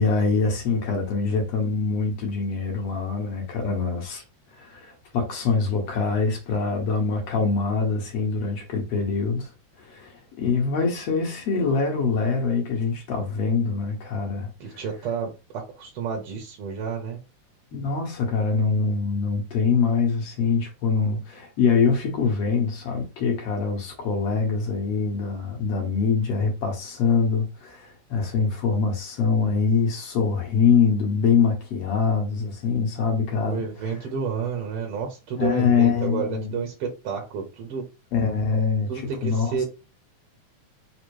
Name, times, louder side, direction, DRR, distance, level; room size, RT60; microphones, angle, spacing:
voice 1, 0.0-4.2 4.6-9.5 9.8-14.8 17.7-33.6 35.4-36.6 38.1-39.6, left 5 dB, 65° left, 1.8 m, -24 dB
voice 2, 14.6-17.2 33.4-37.8 38.9-39.6, right 6 dB, 65° right, 1.5 m, -30 dB
5.1 x 2.1 x 4.6 m
omnidirectional pair, 3.4 m